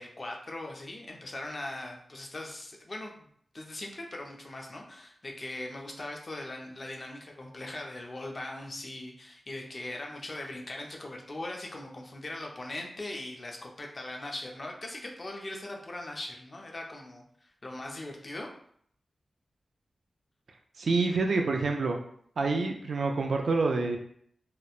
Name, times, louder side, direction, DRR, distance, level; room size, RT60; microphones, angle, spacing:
voice 1, 0.0-3.3 3.5-18.5, left 1 dB, 40° left, 1 dB, 0.5 m, -40 dB
voice 2, 20.8-22.0 22.4-24.0, right 3 dB, 75° right, 2 dB, 0.4 m, -27 dB
2.9 x 2.1 x 2.4 m, 0.64 s
wide cardioid pair, 105°, 0 cm